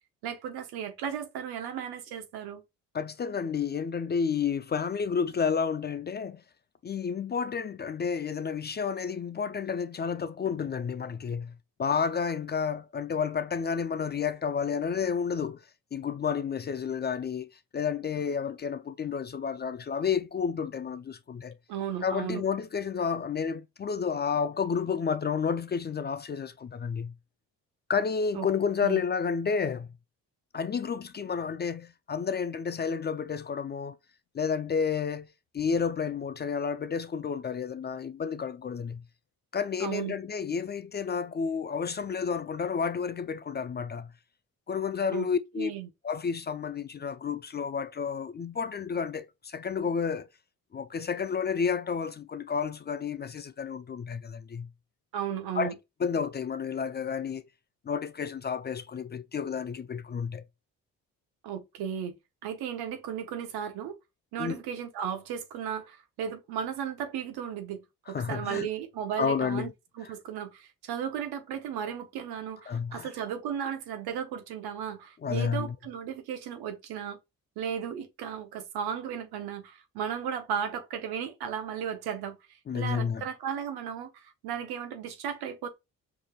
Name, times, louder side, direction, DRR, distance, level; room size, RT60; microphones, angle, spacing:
voice 1, 0.2-2.6 21.7-22.4 28.3-28.5 28.8-29.0 39.8-40.2 45.1-45.3 45.6-45.9 55.1-55.8 61.4-62.1 62.4-63.9 64.3-69.7 70.0-77.2 77.6-85.7, right 8 dB, 80° right, 0.9 m, -35 dB
voice 2, 2.9-6.4 6.8-11.5 11.8-15.6 15.9-21.6 22.0-27.1 27.9-29.9 30.5-34.0 34.3-35.3 35.5-39.0 39.5-44.1 44.7-45.7 46.0-50.3 50.7-54.7 55.5-55.7 56.0-57.4 57.9-60.5 64.4-64.6 68.1-68.7 69.2-69.7 72.7-73.1 75.2-75.7 82.7-83.2, left 6 dB, 30° left, 0.4 m, -31 dB
4.9 x 2.7 x 2.3 m
supercardioid pair, 60°, 38 cm